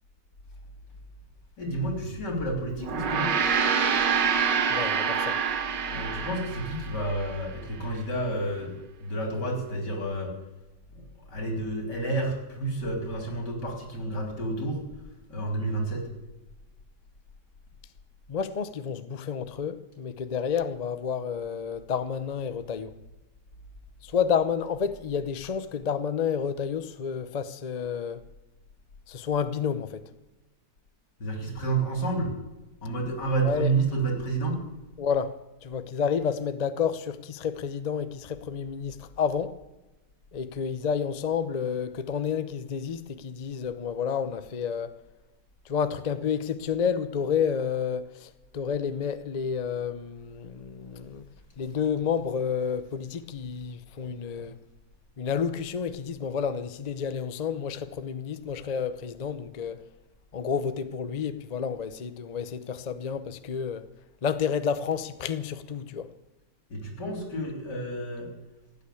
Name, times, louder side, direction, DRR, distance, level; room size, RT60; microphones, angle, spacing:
voice 1, 1.6-3.3 5.9-10.3 10.9-11.0 11.3-14.8 15.3-16.0 31.2-32.3 32.8-34.6 66.7-68.3, right 2 dB, 75° left, 4.1 m, -30 dB
Gong, 2.8-7.4, right 6 dB, 85° right, 1.8 m, -26 dB
voice 2, 4.7-5.4 18.3-22.9 24.1-28.2 29.1-30.0 33.4-33.7 35.0-39.5 40.3-45.0 45.7-51.2 51.6-54.6 55.2-59.8 60.3-63.9 64.2-66.1, left 7 dB, 50° left, 0.5 m, -30 dB
16.0 x 9.5 x 8.4 m
omnidirectional pair, 1.9 m